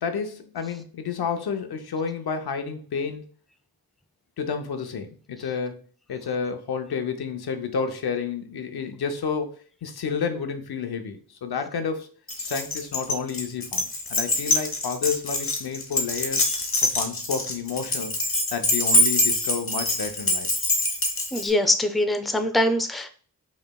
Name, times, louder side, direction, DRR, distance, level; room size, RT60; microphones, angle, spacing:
voice 1, 0.0-3.2 4.4-5.8 6.1-9.5 9.8-12.1 12.4-16.5 16.8-18.1 18.5-20.5, left 6 dB, 85° left, 7 dB, 0.7 m, -30 dB
Keys jangling, 12.3-21.5, left 1 dB, 35° left, 0.9 m, -24 dB
voice 2, 21.3-23.1, left 1 dB, ahead, 8 dB, 0.4 m, -23 dB
5.1 x 3.2 x 2.2 m, 0.42 s
cardioid pair, 60°, 37 cm